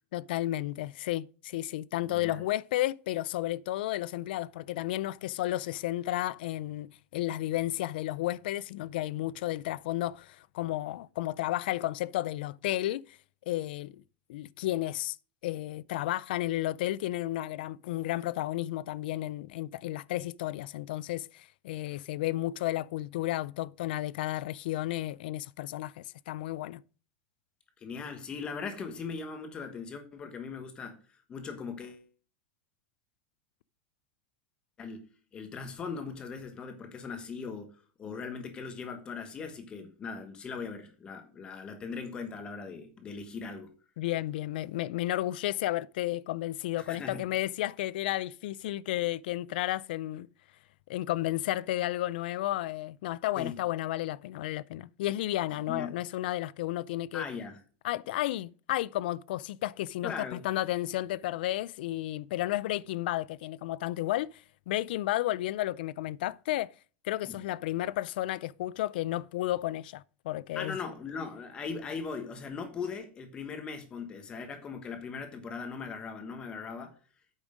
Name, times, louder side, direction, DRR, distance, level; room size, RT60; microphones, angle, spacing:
voice 1, 0.1-13.2 13.5-14.0 14.3-15.2 15.4-26.8 44.0-50.3 50.9-57.2 57.8-66.7 67.0-70.8, left 15 dB, 65° left, 0.3 m, -32 dB
voice 2, 2.0-2.4 27.8-31.0 31.3-32.0 34.8-35.1 35.3-43.7 46.8-47.3 53.4-53.5 55.7-55.9 57.1-57.6 60.0-60.4 67.2-67.4 70.5-77.0, left 5 dB, 15° left, 1.2 m, -39 dB
8.7 x 6.3 x 5.0 m
supercardioid pair, 180°, 6 cm